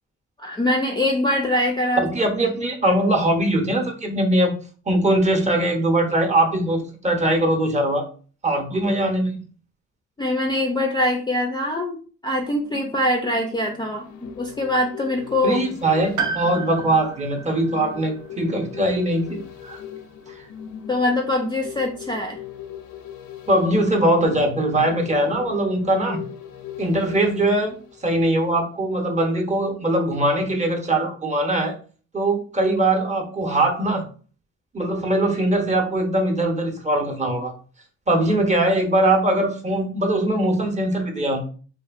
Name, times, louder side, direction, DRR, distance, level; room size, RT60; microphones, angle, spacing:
voice 1, 0.4-2.0 10.2-12.0 12.2-15.6 20.9-22.4, left 1 dB, 15° left, 1 dB, 0.4 m, -23 dB
voice 2, 2.0-4.6 4.9-8.1 8.4-9.4 15.4-19.8 23.5-26.2 26.8-27.8 28.0-31.7 32.1-34.0 34.7-37.5 38.1-41.4, right 1 dB, 25° right, 2 dB, 0.7 m, -21 dB
sound 1, 12.4-28.6 29.0-29.1, left 9 dB, 70° left, 0.5 m, -40 dB
Piano, 16.2-20.1 20.3-20.4 21.6-21.7, right 5 dB, 75° right, 0.6 m, -33 dB
2.6 x 2.5 x 2.4 m, 0.39 s
cardioid pair, 90°, 30 cm